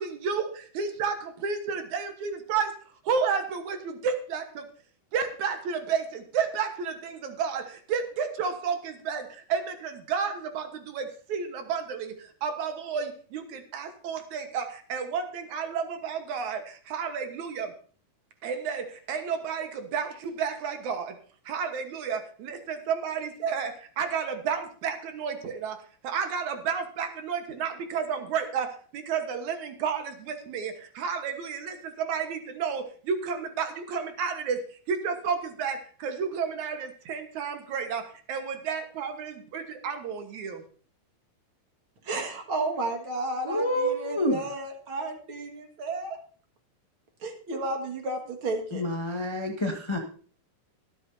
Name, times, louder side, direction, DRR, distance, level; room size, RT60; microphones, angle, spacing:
voice 1, 0.0-4.7 5.1-17.7 18.4-21.2 21.4-40.6, right 6 dB, 70° right, 6 dB, 2.6 m, -31 dB
voice 2, 42.0-46.2 47.2-48.8, right 2 dB, 45° right, 4 dB, 2.3 m, -32 dB
voice 3, 43.4-44.3 48.7-50.0, equal, 45° left, 1 dB, 0.3 m, -28 dB
23.5 x 8.2 x 2.7 m, 0.43 s
omnidirectional pair, 3.7 m